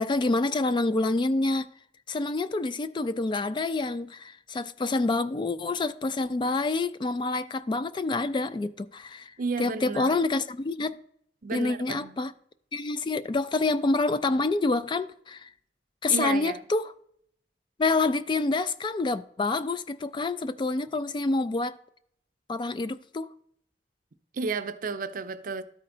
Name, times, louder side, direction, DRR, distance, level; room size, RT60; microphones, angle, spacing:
voice 1, 0.0-1.7 2.1-11.0 11.5-12.3 12.7-15.5 16.0-16.9 17.8-21.8 22.5-23.3, left 3 dB, 25° left, 0.3 m, -27 dB
voice 2, 9.4-10.2 11.4-12.2 16.1-16.6 24.3-25.6, right 4 dB, 50° right, 0.5 m, -32 dB
12.5 x 4.3 x 3.8 m
head